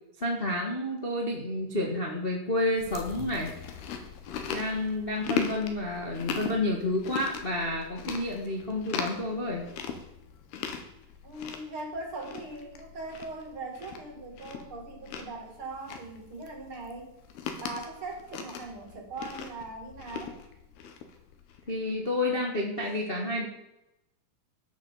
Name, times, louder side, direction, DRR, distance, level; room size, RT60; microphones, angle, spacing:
voice 1, 0.2-3.5 4.5-9.7 21.7-23.5, left 1 dB, 30° left, -1 dB, 1.0 m, -30 dB
Chewing mastication, 2.8-21.7, left 6 dB, 85° left, 3.5 m, -39 dB
voice 2, 11.2-17.2 17.6-20.4, right 2 dB, 40° right, 1 dB, 2.5 m, -40 dB
14.5 x 7.6 x 7.4 m, 0.89 s
omnidirectional pair, 4.4 m